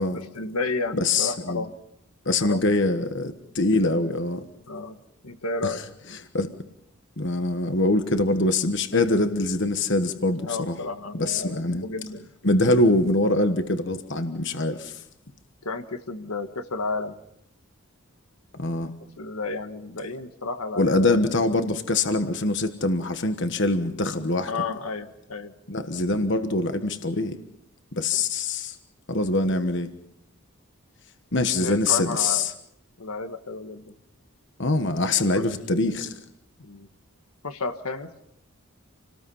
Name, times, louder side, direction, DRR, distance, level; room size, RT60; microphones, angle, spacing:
voice 1, 0.1-1.7 2.4-2.9 4.7-5.0 5.2-5.8 10.5-12.3 15.6-17.2 19.2-21.2 24.5-25.5 26.1-26.3 31.6-32.5 33.0-33.9 35.3-35.5 36.6-36.9 37.4-38.1, left 3 dB, 80° left, 8 dB, 1.5 m, -32 dB
voice 2, 1.0-1.7 2.2-4.5 5.6-5.8 6.1-6.5 7.2-10.8 11.1-11.8 12.4-15.0 18.5-18.9 20.8-24.5 25.7-27.4 27.9-28.8 29.1-29.9 31.3-32.5 34.6-36.1, left 2 dB, 50° left, 8 dB, 1.3 m, -24 dB
28.5 x 19.0 x 5.7 m, 0.79 s
head